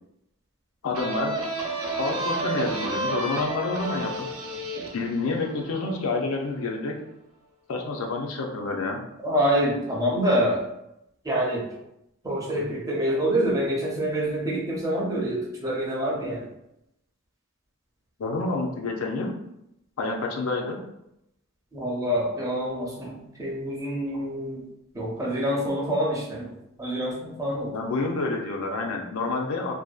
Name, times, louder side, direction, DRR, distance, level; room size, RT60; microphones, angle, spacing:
voice 1, 0.8-1.4 2.0-4.3 4.9-7.0 7.7-9.0 18.2-19.3 20.0-20.8 27.7-29.7, left 3 dB, 70° left, 1 dB, 0.4 m, -28 dB
sound 1, 0.9-6.4, right 2 dB, 75° right, 0.5 m, -31 dB
voice 2, 9.2-10.6 11.2-11.6 12.2-16.4 21.7-24.6 24.9-26.5 26.8-27.7, equal, 15° right, -3 dB, 0.5 m, -26 dB
2.6 x 2.1 x 2.3 m, 0.83 s
head